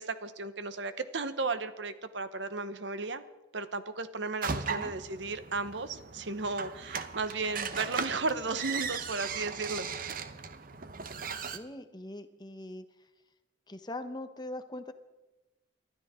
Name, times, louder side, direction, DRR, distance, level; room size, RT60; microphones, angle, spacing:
voice 1, 0.0-3.2 3.5-9.9, right 3 dB, 70° right, 11 dB, 1.0 m, -34 dB
sound 1, 4.4-11.6, right 5 dB, 50° right, 0.9 m, -37 dB
voice 2, 4.5-4.9 11.4-12.8 13.7-14.9, left 1 dB, 25° left, 9 dB, 0.9 m, -42 dB
30.0 x 12.5 x 3.7 m, 1.0 s
head